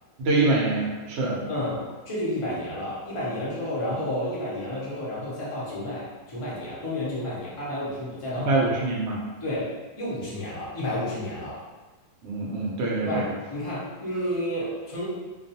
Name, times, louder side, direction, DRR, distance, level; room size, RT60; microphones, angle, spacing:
voice 1, 0.2-1.4 8.4-9.2 12.2-13.2, right 2 dB, 70° right, -3 dB, 0.6 m, -24 dB
voice 2, 1.5-8.5 9.4-11.6 13.0-15.0, left 1 dB, 55° left, -8 dB, 0.3 m, -31 dB
2.3 x 2.3 x 2.7 m, 1.3 s
omnidirectional pair, 1.7 m